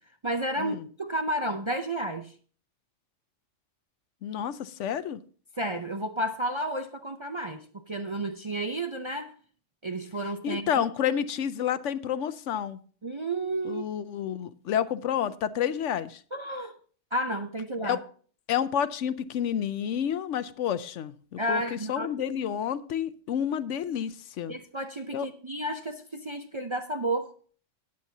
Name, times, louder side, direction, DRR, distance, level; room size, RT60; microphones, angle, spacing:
voice 1, 0.2-2.3 5.6-9.3 9.8-10.8 13.0-13.8 16.3-16.7 17.1-18.0 21.4-22.1 24.5-27.3, right 1 dB, 35° right, 6 dB, 0.5 m, -31 dB
voice 2, 4.2-5.2 10.4-12.8 13.6-16.2 17.8-18.0 18.5-24.5 25.1-25.3, left 9 dB, 75° left, 15 dB, 1.0 m, -30 dB
18.0 x 7.6 x 2.7 m, 0.43 s
omnidirectional pair, 1.3 m